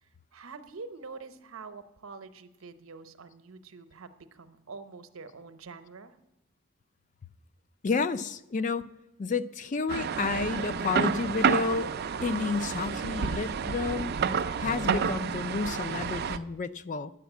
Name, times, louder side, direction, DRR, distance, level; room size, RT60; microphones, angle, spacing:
voice 1, 0.0-6.2, right 4 dB, 75° right, 10 dB, 0.8 m, -46 dB
voice 2, 7.8-8.9 9.2-11.9 12.2-14.1 14.6-17.1, left 4 dB, 35° left, 14 dB, 0.3 m, -30 dB
sound 1, 9.9-16.4, right 6 dB, 45° right, 0.4 m, -30 dB
10.0 x 7.4 x 8.2 m, 0.91 s
head